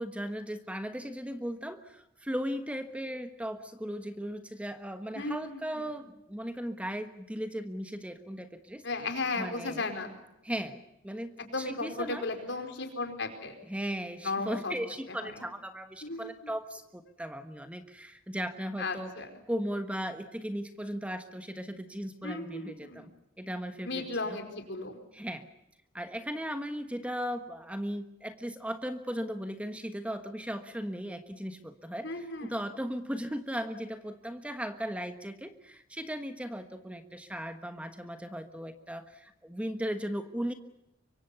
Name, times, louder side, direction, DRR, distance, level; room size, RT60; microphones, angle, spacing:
voice 1, 0.0-9.9 10.4-12.3 13.6-23.1 23.4-24.4 25.1-25.4 25.9-40.5, equal, 5° right, 8 dB, 1.3 m, -37 dB
voice 2, 5.1-5.9 8.8-10.1 11.4-13.6 14.2-14.7 15.1-15.4 16.0-16.5 18.8-19.3 22.2-23.1 23.8-25.0 32.0-32.6, left 3 dB, 65° left, 5 dB, 4.8 m, -35 dB
24.5 x 24.0 x 7.0 m, 0.84 s
head